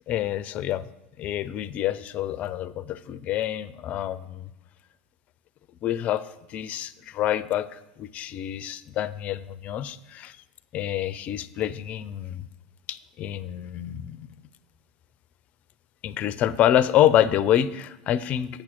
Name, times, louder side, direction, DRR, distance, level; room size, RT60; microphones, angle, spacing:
voice 1, 0.1-0.9 1.2-4.5 5.8-10.4 10.7-12.4 12.9-14.3 16.0-18.6, left 11 dB, 45° left, 17 dB, 0.5 m, -27 dB
8.9 x 6.0 x 6.0 m, 0.90 s
hypercardioid pair, 90°, 3 cm